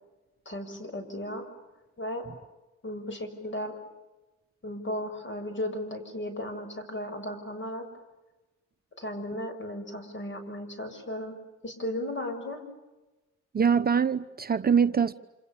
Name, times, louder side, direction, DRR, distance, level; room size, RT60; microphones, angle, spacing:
voice 1, 0.4-1.4 2.0-2.2 2.8-3.7 4.6-7.8 9.0-11.3 11.6-12.6, left 1 dB, 40° left, 6.8 m, -35 dB
voice 2, 13.5-15.1, right 6 dB, 30° right, 0.8 m, -23 dB
28.0 x 27.5 x 7.1 m
cardioid pair, 90°, 30 cm